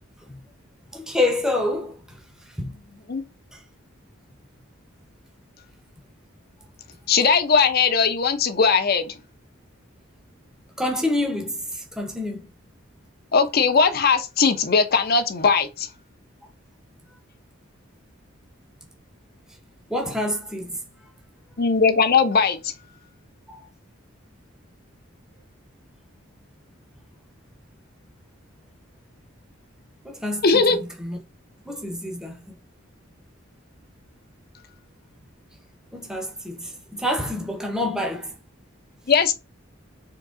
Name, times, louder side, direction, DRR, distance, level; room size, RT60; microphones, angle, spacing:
voice 1, 0.9-2.8 3.5-3.6 10.8-12.5 19.9-20.8 23.5-23.6 30.0-31.2 31.6-32.5 35.9-38.4, left 1 dB, 5° right, 0.7 m, -28 dB
voice 2, 7.1-9.1 13.3-15.9 21.6-22.7 30.4-30.8 39.1-39.3, left 5 dB, 50° left, 0.6 m, -19 dB
3.8 x 2.9 x 3.6 m
head